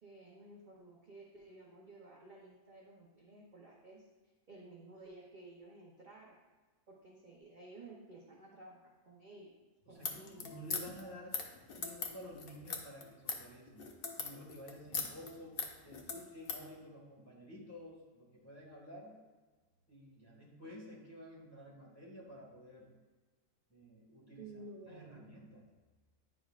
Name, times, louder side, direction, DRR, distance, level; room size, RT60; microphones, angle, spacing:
voice 1, 0.0-4.1 4.5-6.4 6.9-9.5 9.9-10.6 24.4-25.3, right 2 dB, 45° right, -3 dB, 0.7 m, -54 dB
sound 1, 9.9-16.7, left 5 dB, 50° left, 0.7 m, -41 dB
voice 2, 9.9-11.4 11.8-13.8 14.2-19.1 19.9-22.9 23.7-24.5 24.9-25.6, equal, 10° left, -5 dB, 1.6 m, -52 dB
9.8 x 5.3 x 2.4 m, 1.3 s
omnidirectional pair, 1.7 m